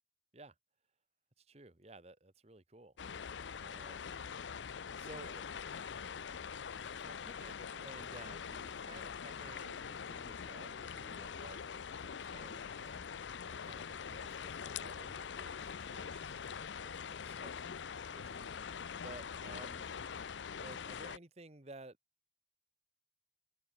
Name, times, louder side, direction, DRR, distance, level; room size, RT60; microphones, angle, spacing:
voice 1, 1.4-2.9 3.6-4.1 5.0-5.4 6.9-19.9 20.5-22.0, right 2 dB, 35° right, 1.3 m, -55 dB
sound 1, 3.0-21.2, left 6 dB, 80° left, 0.6 m, -44 dB
open air
head